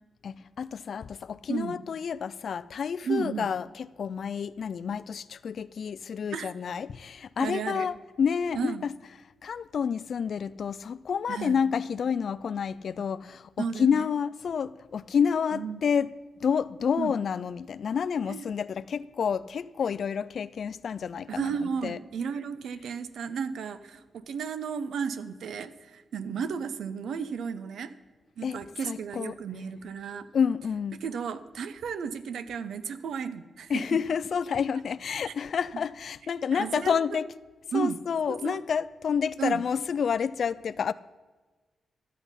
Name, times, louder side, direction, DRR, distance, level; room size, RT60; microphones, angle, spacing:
voice 1, 0.2-8.9 9.4-16.1 16.4-22.0 28.4-29.3 30.3-31.0 33.7-37.3 37.7-40.9, left 7 dB, 55° left, 0.3 m, -29 dB
voice 2, 3.0-3.5 6.3-6.5 7.4-7.9 8.5-8.8 11.3-11.6 13.6-14.1 15.5-15.8 17.0-17.1 18.3-18.4 21.3-27.9 28.4-30.3 31.0-34.0 35.3-35.4 36.5-37.2 37.7-38.0 38.3-38.6 39.4-39.6, right 6 dB, 75° right, 0.6 m, -33 dB
12.5 x 8.2 x 5.6 m
wide cardioid pair, 160°, 0 cm